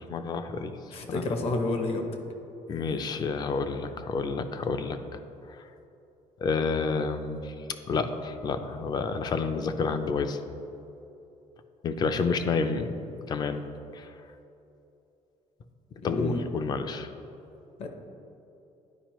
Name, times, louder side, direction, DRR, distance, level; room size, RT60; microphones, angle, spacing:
voice 1, 0.0-0.8 1.1-1.4 2.7-5.0 6.4-7.5 7.9-10.4 11.8-12.9 13.3-13.6 13.9-14.1 16.0-17.1, left 4 dB, 35° left, 9 dB, 0.4 m, -29 dB
voice 2, 0.9-2.1 16.0-16.4 17.8-17.9, left 2 dB, 50° left, 5 dB, 0.8 m, -29 dB
10.5 x 4.8 x 3.0 m, 2.9 s
cardioid pair, 155°, 13 cm